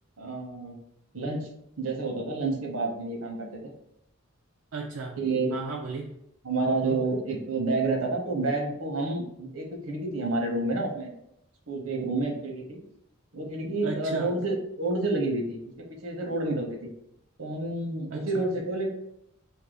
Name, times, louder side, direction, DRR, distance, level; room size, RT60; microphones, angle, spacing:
voice 1, 0.2-0.8 1.1-1.5 1.8-3.7 5.2-5.6 6.4-11.1 11.7-12.8 13.3-16.9 17.4-18.9, right 2 dB, 80° right, 1 dB, 0.9 m, -29 dB
voice 2, 4.7-5.2 5.5-6.1 6.8-7.0 13.8-14.3 18.1-18.4, right 4 dB, 65° right, 1 dB, 0.4 m, -34 dB
2.7 x 2.6 x 3.9 m, 0.78 s
head